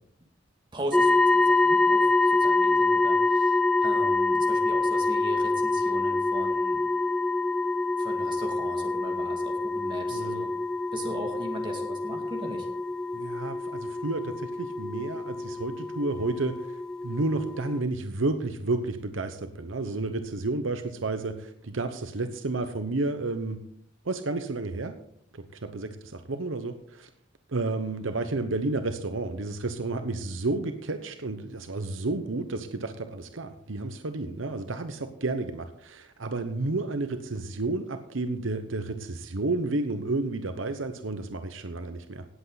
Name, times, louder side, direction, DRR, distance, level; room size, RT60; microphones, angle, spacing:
voice 1, 0.7-6.8 8.0-10.5 10.9-12.7, right 1 dB, 25° right, 1 dB, 2.4 m, -39 dB
sound 1, 0.9-17.8, left 3 dB, 5° left, 0.7 m, -26 dB
voice 2, 10.1-10.5 13.1-23.6 24.0-24.9 25.3-27.1 27.5-42.3, right 2 dB, 80° right, 8 dB, 0.9 m, -31 dB
17.5 x 8.0 x 4.1 m, 0.70 s
head